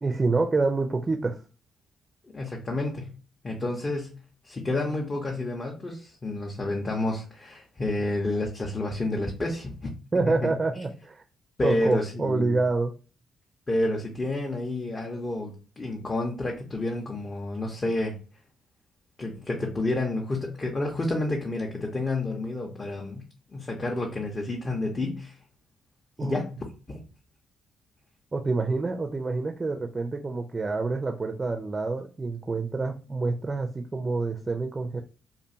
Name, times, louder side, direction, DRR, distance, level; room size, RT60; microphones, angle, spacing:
voice 1, 0.0-1.4 10.1-11.2 11.6-12.9 26.2-26.4 28.3-35.0, right 3 dB, 30° right, 0.4 m, -27 dB
voice 2, 2.3-3.1 3.4-4.2 4.4-9.9 10.4-10.5 11.6-12.6 13.7-18.2 19.2-23.2 23.5-25.4 26.2-26.6 26.9-27.0, left 2 dB, 35° left, 0.6 m, -30 dB
2.5 x 2.2 x 2.6 m
hypercardioid pair, 40°, 0 cm